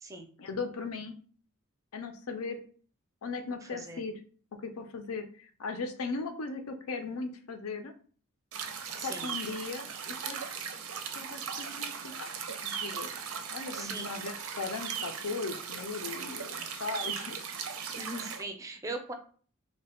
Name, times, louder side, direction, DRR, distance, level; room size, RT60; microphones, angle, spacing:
voice 1, 0.4-1.1 1.9-2.6 3.2-4.2 4.5-7.9 9.0-10.5 11.1-12.3 12.6-13.1 13.5-17.4, left 4 dB, 85° left, 7 dB, 0.5 m, -38 dB
voice 2, 3.6-4.0 9.0-9.3 13.7-14.1 17.9-19.1, right 2 dB, 15° right, 4 dB, 0.4 m, -40 dB
sound 1, 8.5-18.4, right 7 dB, 80° right, 0.5 m, -38 dB
3.2 x 2.2 x 4.1 m, 0.44 s
head